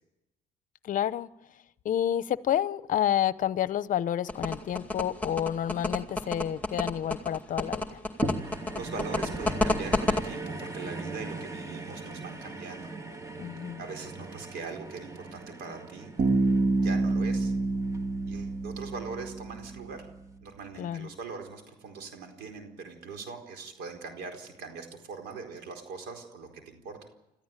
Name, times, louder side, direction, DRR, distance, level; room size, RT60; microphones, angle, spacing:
voice 1, 0.8-1.3 1.8-8.0 13.4-13.8 20.8-21.1, left 10 dB, 50° left, 0.8 m, -29 dB
sound 1, 4.3-10.2, left 2 dB, 10° left, 2.2 m, -28 dB
sound 2, 8.2-18.7 19.3-19.4, right 2 dB, 20° right, 2.1 m, -39 dB
voice 2, 8.4-12.9 13.8-16.1 16.8-17.5 18.3-20.1 20.4-27.0, right 4 dB, 80° right, 4.4 m, -41 dB
Bass guitar, 16.2-19.9, right 3 dB, 50° right, 2.3 m, -27 dB
27.5 x 14.0 x 9.1 m
cardioid pair, 110°, 17 cm